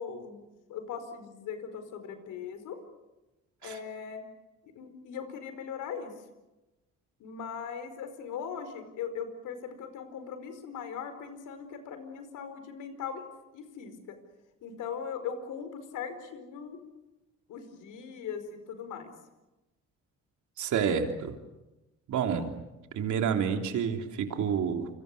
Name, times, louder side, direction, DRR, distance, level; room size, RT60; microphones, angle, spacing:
voice 1, 0.0-2.8 3.6-4.2 4.7-6.1 7.2-13.3 13.5-14.2 14.6-16.8 17.5-19.1, left 7 dB, 85° left, 9 dB, 4.8 m, -39 dB
voice 2, 20.6-21.3 22.1-22.5 22.9-24.9, right 7 dB, 75° right, 4 dB, 3.4 m, -29 dB
28.5 x 25.5 x 6.8 m, 1.0 s
cardioid pair, 90°, 30 cm